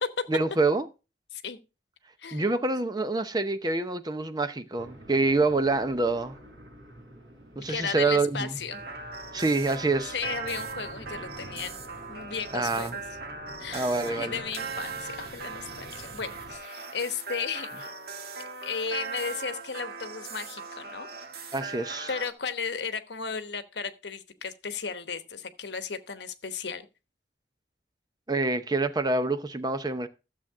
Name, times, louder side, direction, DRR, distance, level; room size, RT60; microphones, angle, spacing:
voice 1, 0.3-0.8 2.3-6.4 7.6-8.5 9.3-10.1 12.5-12.9 13.7-14.4 21.5-22.1 28.3-30.1, right 3 dB, 20° right, 0.7 m, -26 dB
voice 2, 2.2-2.5 7.7-8.8 10.0-11.8 12.1-13.0 13.6-17.9 18.6-21.1 22.1-26.9, left 6 dB, 70° left, 1.1 m, -35 dB
sound 1, 4.8-16.6, equal, 90° right, 4.9 m, -48 dB
sound 2, 8.7-22.3, right 4 dB, 60° right, 1.5 m, -39 dB
13.0 x 7.5 x 3.6 m
head